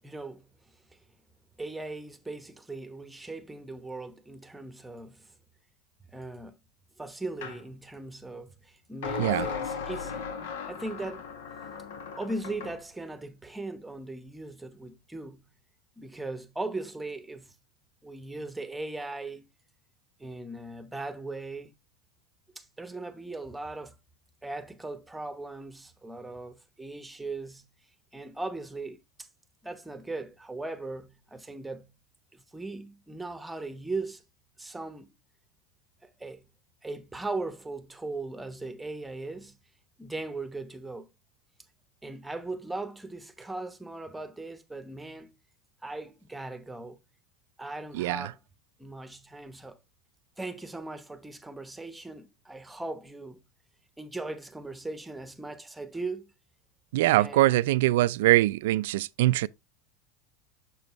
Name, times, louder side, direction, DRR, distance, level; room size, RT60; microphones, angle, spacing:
voice 1, 0.0-0.8 1.6-5.4 6.1-6.6 7.0-10.2 10.6-11.3 12.2-15.5 16.0-17.6 18.0-19.5 20.2-21.7 22.5-24.0 24.4-27.7 28.1-29.3 29.6-32.0 32.3-34.2 34.6-35.1 36.0-36.5 36.8-39.6 40.0-41.1 42.0-45.3 45.8-47.0 47.6-48.4 48.8-49.8 50.4-53.4 54.0-56.3 57.0-57.8, right 2 dB, 5° right, 0.9 m, -39 dB
sound 1, 7.4-7.6 9.0-12.8, left 6 dB, 80° left, 1.5 m, -36 dB
voice 2, 56.9-59.5, right 17 dB, 75° right, 0.3 m, -23 dB
6.9 x 6.3 x 2.9 m
supercardioid pair, 120°, 0 cm